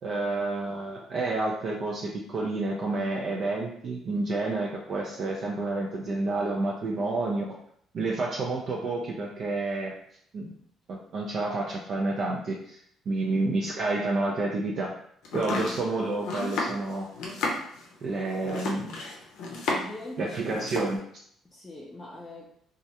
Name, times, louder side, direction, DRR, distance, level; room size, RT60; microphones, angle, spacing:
voice 1, 0.0-7.4 7.9-9.9 10.3-10.5 10.9-12.8 13.1-14.9 15.3-17.1 18.0-18.9 20.2-21.0, right 2 dB, 55° right, -2 dB, 0.4 m, -29 dB
Domestic sounds home sounds, 15.2-20.0 20.3-20.9, left 3 dB, 85° left, 0.5 m, -32 dB
voice 2, 19.7-20.4 21.4-22.5, left 1 dB, 20° left, -5 dB, 0.5 m, -42 dB
2.3 x 2.1 x 2.8 m, 0.66 s
cardioid pair, 90°, 0 cm